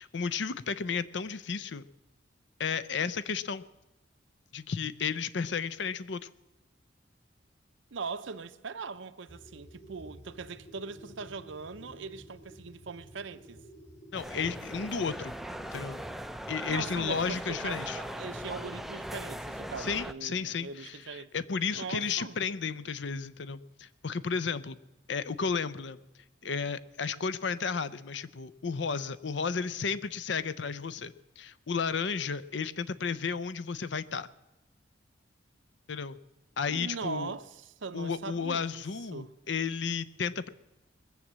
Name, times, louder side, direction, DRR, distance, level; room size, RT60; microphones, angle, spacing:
voice 1, 0.0-1.8 2.6-3.6 4.5-6.3 14.1-15.3 15.7-16.0 16.5-18.0 19.8-24.8 25.1-26.0 26.4-34.3 35.9-36.2 36.6-37.3 37.9-40.5, left 5 dB, 65° left, 0.6 m, -33 dB
voice 2, 7.9-13.6 16.7-21.3 21.7-22.4 36.7-38.8 39.1-39.3, right 4 dB, 80° right, 0.7 m, -40 dB
sound 1, 9.3-16.2, equal, 35° left, 2.7 m, -52 dB
sound 2, 14.1-20.1, equal, ahead, 0.4 m, -39 dB
20.5 x 7.4 x 7.4 m
head